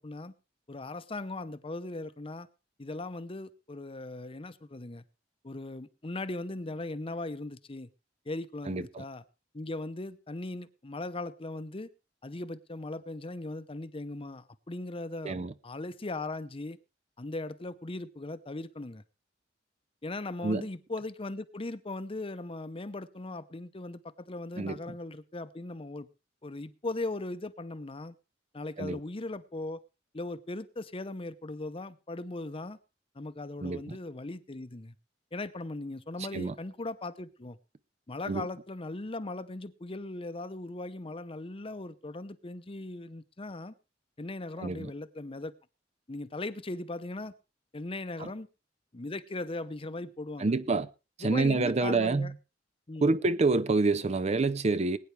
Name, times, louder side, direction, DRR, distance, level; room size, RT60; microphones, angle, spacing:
voice 1, 0.0-0.3 0.7-2.5 2.8-5.0 5.4-7.9 8.3-9.2 9.5-11.9 12.2-16.8 17.2-19.0 20.0-26.1 26.4-28.1 28.5-29.8 30.1-32.8 33.1-34.9 35.3-37.6 38.1-43.7 44.2-45.5 46.1-47.3 47.7-48.5 48.9-50.5 51.2-52.3 52.9-53.1, left 2 dB, 30° left, 0.7 m, -38 dB
voice 2, 8.7-9.0 15.2-15.5 20.4-20.7 24.6-24.8 28.8-29.0 33.6-34.0 36.3-36.5 38.3-38.5 44.6-44.9 48.2-48.3 50.4-50.9 51.2-52.3 53.0-55.0, right 3 dB, 35° right, 0.6 m, -27 dB
20.5 x 9.5 x 3.3 m
head